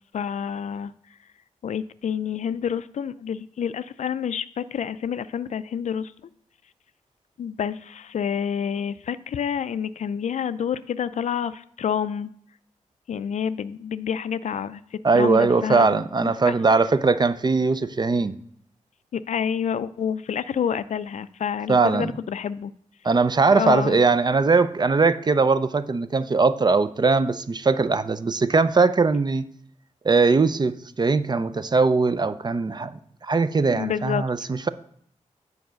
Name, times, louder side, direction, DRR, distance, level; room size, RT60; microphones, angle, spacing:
voice 1, 0.1-0.9 1.6-6.1 7.4-12.3 13.1-14.8 15.1-16.5 19.1-22.7 23.5-24.0 33.7-34.2, left 8 dB, 65° left, 0.4 m, -28 dB
voice 2, 15.0-18.4 21.7-22.1 23.0-29.4 30.0-34.7, right 4 dB, 35° right, 0.4 m, -20 dB
7.0 x 4.7 x 6.3 m
cardioid pair, 65°, 13 cm